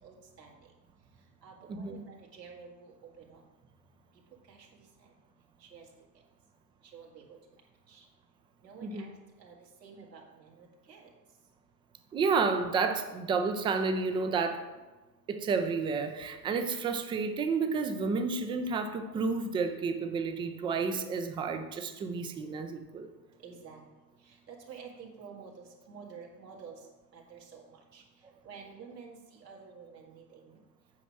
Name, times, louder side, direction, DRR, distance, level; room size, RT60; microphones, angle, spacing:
voice 1, 0.0-0.5 1.4-3.4 4.5-4.8 5.6-5.8 6.9-7.4 7.9-8.0 8.6-9.1 9.4-9.5 9.8-11.1 23.4-23.8 24.3-26.8 27.1-27.6 27.9-28.0 28.4-30.5, right 6 dB, 75° right, -1 dB, 2.1 m, -50 dB
voice 2, 1.7-2.0 8.8-9.1 12.1-14.7 15.3-23.1, right 4 dB, 10° right, 7 dB, 0.4 m, -31 dB
8.5 x 5.1 x 5.9 m, 1.2 s
figure-of-eight pair, 90°, 50 cm